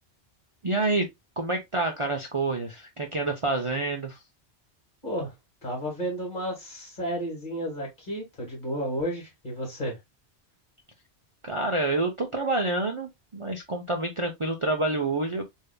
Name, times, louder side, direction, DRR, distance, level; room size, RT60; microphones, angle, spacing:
voice 1, 0.6-1.1 1.4-4.2 11.4-15.4, right 2 dB, 35° right, 0.7 m, -28 dB
voice 2, 5.0-5.3 5.6-10.0, equal, 45° left, 2.4 m, -32 dB
6.6 x 2.8 x 2.2 m
omnidirectional pair, 1.2 m